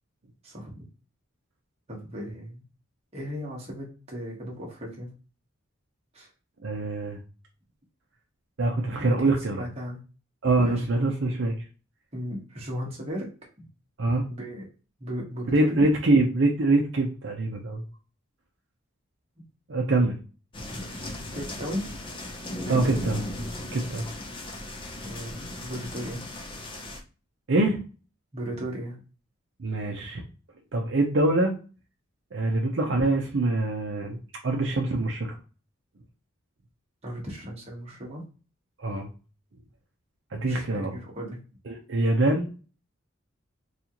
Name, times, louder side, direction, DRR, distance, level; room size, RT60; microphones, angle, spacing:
voice 1, 0.4-0.9 1.9-2.6 3.1-5.1 6.1-6.3 9.0-10.0 10.6-10.8 12.1-13.3 13.6-13.7 14.3-14.7 15.0-15.9 19.4-19.5 19.7-19.8 20.7-21.1 21.3-21.9 22.6-23.0 25.0-26.3 28.3-29.0 37.0-38.2 40.5-41.4, equal, 30° right, -2 dB, 1.2 m, -36 dB
voice 2, 6.6-7.2 8.6-9.6 10.4-11.5 14.0-14.2 15.5-17.8 19.7-20.2 22.7-23.2 23.7-24.0 27.5-27.8 29.6-30.2 30.7-31.5 32.3-34.2 34.4-35.4 38.8-39.1 40.3-40.9 41.7-42.6, right 2 dB, 60° right, 1 dB, 0.6 m, -24 dB
sound 1, 20.5-27.0, left 1 dB, 25° left, 0.6 m, -37 dB
4.1 x 2.4 x 2.9 m, 0.35 s
head